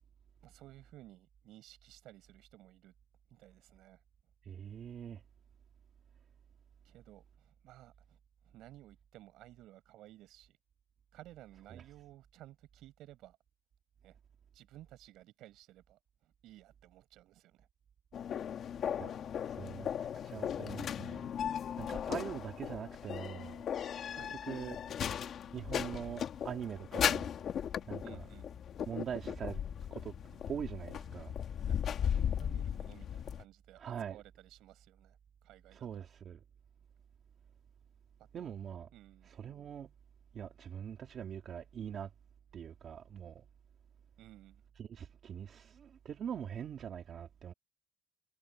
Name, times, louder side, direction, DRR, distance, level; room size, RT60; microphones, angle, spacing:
voice 1, 0.4-2.9 3.3-4.0 6.8-8.2 8.4-10.6 11.1-13.4 14.0-14.2 14.5-17.7 24.1-24.4 28.0-28.5 31.6-35.2 35.4-36.0 38.4-38.6 38.9-39.3 44.2-44.6, right 15 dB, 70° right, 6.5 m, -56 dB
voice 2, 4.4-5.2 11.7-11.8 19.0-19.1 19.4-21.3 21.8-23.6 24.3-24.8 25.5-27.3 27.9-28.2 28.9-29.6 29.9-30.1 30.5-31.3 33.8-34.2 35.7-36.4 38.3-38.9 39.3-39.9 40.3-42.1 42.5-43.4 44.8-47.5, right 8 dB, 40° right, 2.0 m, -43 dB
sound 1, 18.1-33.4, left 9 dB, 45° left, 1.8 m, -37 dB
cardioid pair, 150°, 0 cm